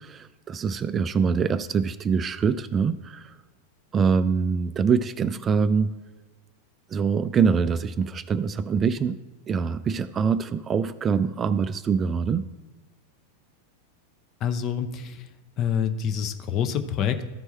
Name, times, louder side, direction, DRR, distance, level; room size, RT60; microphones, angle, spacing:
voice 1, 0.0-3.3 3.9-5.9 6.9-9.2 9.5-12.5, right 6 dB, 25° right, 13 dB, 0.3 m, -24 dB
voice 2, 14.4-15.2 15.6-17.2, left 8 dB, 35° left, 9 dB, 0.7 m, -27 dB
13.5 x 4.6 x 4.3 m, 1.2 s
figure-of-eight pair, 90°, 0 cm